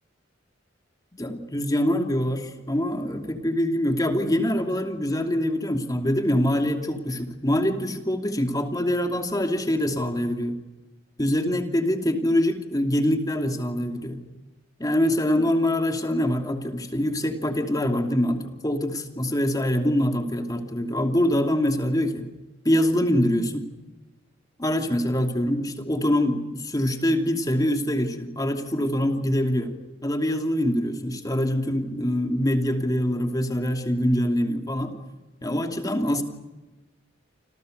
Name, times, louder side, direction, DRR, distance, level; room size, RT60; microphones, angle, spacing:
voice 1, 1.1-10.6 11.2-14.2 14.8-22.2 22.6-23.7 24.6-29.7 30.0-35.0 35.4-36.2, left 1 dB, 20° left, 4 dB, 2.8 m, -24 dB
29.0 x 27.0 x 6.7 m, 1.1 s
head